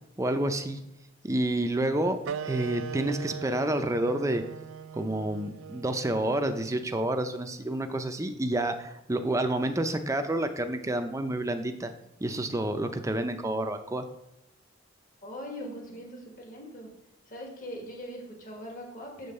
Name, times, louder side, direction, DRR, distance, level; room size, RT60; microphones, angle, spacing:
voice 1, 0.2-0.8 1.2-2.2 2.4-4.4 4.9-11.9 12.2-14.1, right 1 dB, 15° right, 7 dB, 0.5 m, -29 dB
sound 1, 2.2-7.4, right 7 dB, 70° right, 0.3 m, -40 dB
voice 2, 15.2-16.9 17.3-19.3, equal, 45° left, 0 dB, 1.6 m, -41 dB
7.0 x 3.9 x 6.5 m, 0.85 s
head